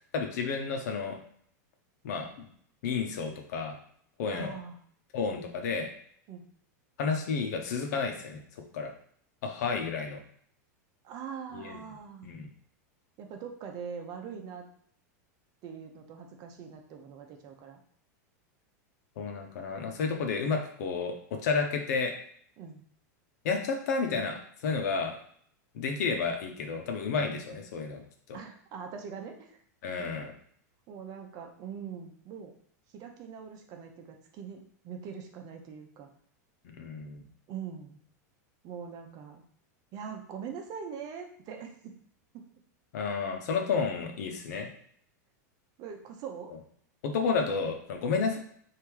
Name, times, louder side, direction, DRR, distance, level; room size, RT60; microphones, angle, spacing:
voice 1, 0.1-1.2 2.0-2.5 2.8-3.8 4.2-4.6 5.1-5.9 7.0-8.9 9.4-10.2 11.5-11.8 12.2-12.5 19.2-22.1 23.4-25.2 25.7-28.0 28.3-28.4 29.8-30.3 36.8-37.2 42.9-44.7 47.0-48.4, left 5 dB, 70° left, 4 dB, 1.0 m, -31 dB
voice 2, 4.3-4.8 6.3-6.4 11.0-12.3 13.2-14.7 15.6-17.8 22.6-22.8 28.3-29.6 30.0-30.1 30.9-32.5 32.9-36.1 37.5-38.0 38.6-39.4 39.9-41.9 42.3-42.5 45.8-46.5, right 7 dB, 45° right, 3 dB, 0.9 m, -42 dB
3.5 x 2.9 x 4.7 m, 0.62 s
supercardioid pair, 125°, 9 cm